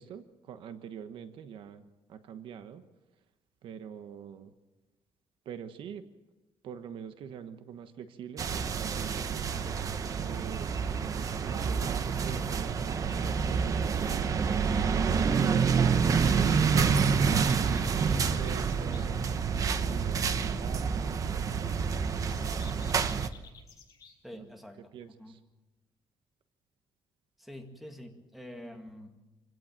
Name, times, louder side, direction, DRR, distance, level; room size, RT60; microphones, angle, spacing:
voice 1, 0.0-1.8 2.1-2.8 3.6-4.5 5.4-6.0 6.6-9.5 10.2-10.7 11.0-14.8 17.7-19.2 19.8-21.2 24.3-24.5 24.9-25.4, right 8 dB, 65° right, 9 dB, 1.2 m, -44 dB
sound 1, 8.4-23.3, right 6 dB, 40° right, 0.9 m, -28 dB
sound 2, 17.0-19.1 22.0-24.1, left 6 dB, 35° left, 7.8 m, -54 dB
voice 2, 24.2-25.4 27.4-29.2, left 1 dB, ahead, 4 dB, 2.2 m, -47 dB
26.0 x 17.0 x 7.5 m, 1.1 s
cardioid pair, 165°, 9 cm